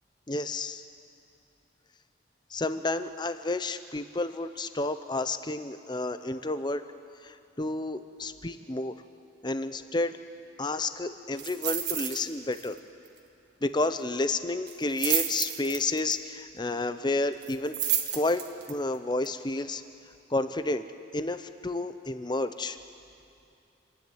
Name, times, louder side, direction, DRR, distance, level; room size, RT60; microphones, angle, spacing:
voice 1, 0.3-0.8 2.5-6.8 7.2-8.9 9.4-10.2 10.6-12.8 13.6-17.8 18.1-18.4 18.7-19.8 20.3-20.8 21.1-22.8, left 2 dB, 25° left, 11 dB, 0.7 m, -30 dB
sound 1, 11.4-12.2 12.5-12.8 13.1-13.2 14.7-16.1 17.4-18.7 19.2-19.3, right 9 dB, 60° right, 1.6 m, -30 dB
27.5 x 10.5 x 9.4 m, 2.6 s
head